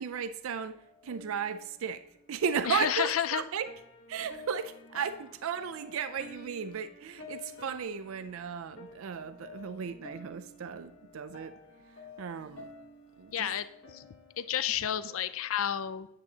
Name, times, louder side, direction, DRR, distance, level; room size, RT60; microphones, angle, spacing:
voice 1, 0.0-3.7 4.1-11.6 11.9-12.7 13.2-13.5, right 6 dB, 85° right, 11 dB, 0.4 m, -35 dB
sound 1, 0.6-15.5, left 2 dB, 60° left, 1.0 m, -51 dB
voice 2, 2.7-3.4 13.3-13.6 13.9-14.0 14.4-16.1, left 10 dB, 85° left, 14 dB, 0.4 m, -30 dB
9.6 x 8.5 x 2.8 m, 0.81 s
head